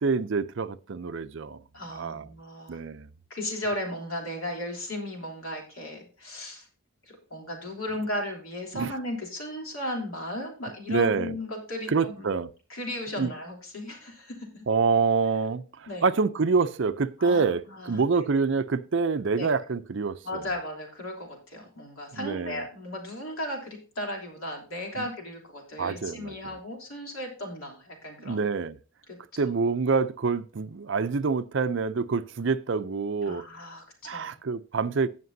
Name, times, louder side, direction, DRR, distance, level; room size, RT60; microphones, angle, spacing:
voice 1, 0.0-1.6 1.9-2.3 2.7-3.1 8.7-8.9 10.9-11.4 11.9-12.5 13.2-13.3 14.7-20.4 22.1-22.6 25.0-25.1 25.8-26.3 28.2-28.8 29.4-33.4 34.0-35.1, right 4 dB, 55° right, 0.5 m, -26 dB
voice 2, 1.7-2.8 3.3-6.7 7.0-12.3 12.7-14.6 15.9-16.1 17.2-18.0 19.4-19.5 20.2-28.4 29.1-29.2 29.4-29.5 33.2-34.3, left 1 dB, 75° left, 3.2 m, -36 dB
17.0 x 5.9 x 2.7 m
head